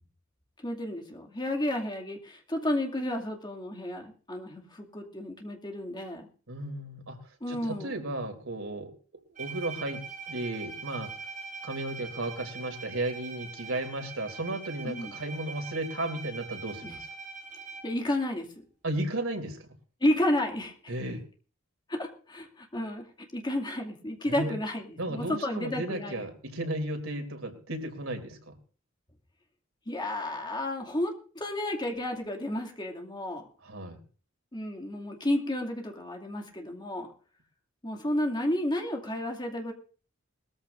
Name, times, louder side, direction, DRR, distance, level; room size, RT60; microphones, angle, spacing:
voice 1, 0.6-6.3 7.4-8.0 14.8-15.2 16.8-17.0 17.8-18.5 20.0-20.9 21.9-26.2 29.9-33.5 34.5-37.1 37.8-39.7, left 1 dB, 20° left, 2 dB, 2.5 m, -32 dB
voice 2, 6.5-7.2 7.5-8.9 9.3-11.1 11.6-17.1 18.8-19.7 20.9-21.2 24.3-24.6 25.0-28.6 33.6-34.0, right 1 dB, 90° right, 4 dB, 3.0 m, -34 dB
Bowed string instrument, 9.3-18.1, right 5 dB, 40° right, 6.6 m, -42 dB
20.5 x 14.0 x 2.6 m, 0.39 s
head